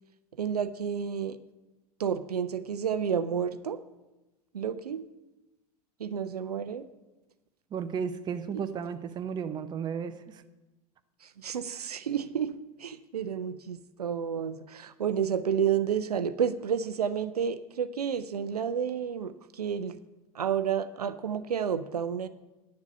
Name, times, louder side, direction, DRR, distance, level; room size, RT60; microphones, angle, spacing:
voice 1, 0.4-1.4 2.0-3.8 4.5-5.0 6.0-6.9 11.2-20.0 20.3-22.3, right 7 dB, 75° right, 12 dB, 0.5 m, -30 dB
voice 2, 7.7-10.4, right 7 dB, 20° right, 10 dB, 0.6 m, -34 dB
10.5 x 7.2 x 6.5 m, 1.1 s
figure-of-eight pair, 90°, 20 cm